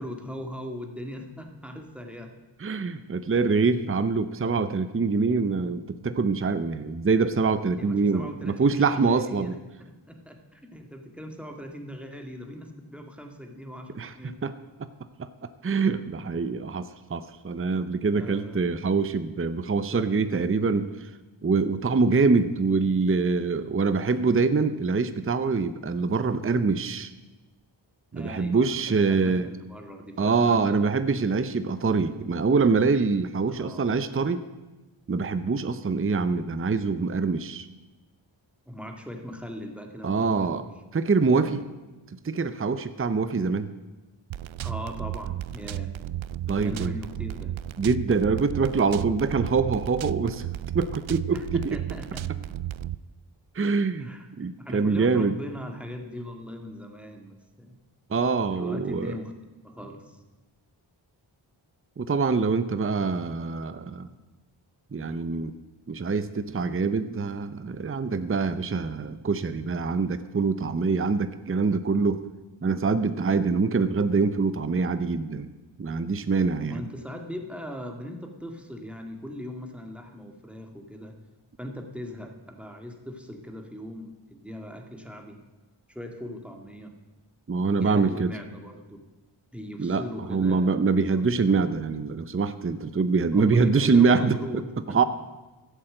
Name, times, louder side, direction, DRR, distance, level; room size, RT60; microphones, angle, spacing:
voice 1, 0.0-2.3 7.8-14.4 18.1-18.6 28.1-30.7 33.5-33.9 38.7-40.7 41.4-41.6 44.6-45.9 46.6-47.5 51.3-52.4 54.0-54.3 54.6-57.8 58.5-59.3 59.6-60.2 76.7-81.1 81.6-85.4 85.9-86.9 87.8-89.1 89.5-91.3 93.3-95.1, equal, ahead, 3 dB, 2.0 m, -39 dB
voice 2, 2.6-9.5 14.0-14.5 15.2-15.3 15.6-21.1 21.4-27.1 28.1-29.5 30.2-34.4 35.1-37.7 40.0-40.6 40.9-41.6 42.2-43.7 46.5-46.9 47.8-50.5 50.7-51.8 53.5-54.1 54.4-55.4 58.1-59.2 62.0-64.1 64.9-65.5 65.9-72.3 72.6-75.5 75.8-76.8 87.5-88.3 89.8-90.0 90.3-94.4 94.9-95.0, right 4 dB, 25° right, 11 dB, 0.7 m, -24 dB
sound 1, 44.3-53.0, right 12 dB, 70° right, 0.5 m, -34 dB
12.5 x 7.9 x 7.8 m, 1.1 s
cardioid pair, 50°, 48 cm